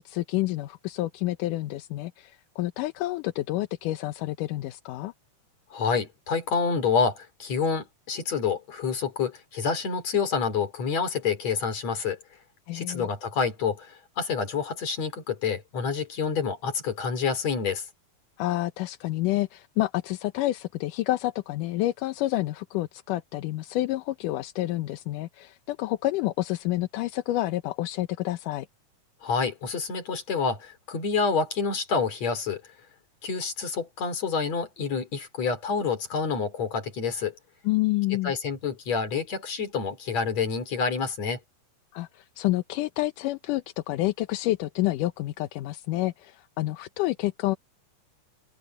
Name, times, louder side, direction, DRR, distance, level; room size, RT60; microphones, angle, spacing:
voice 1, 0.0-5.1 12.7-13.1 18.4-28.7 37.7-38.3 41.9-47.6, left 16 dB, 80° left, 2.4 m, -29 dB
voice 2, 5.7-12.2 12.7-17.9 29.2-32.6 33.2-37.3 38.2-41.4, left 5 dB, 55° left, 4.8 m, -28 dB
omnidirectional pair, 3.7 m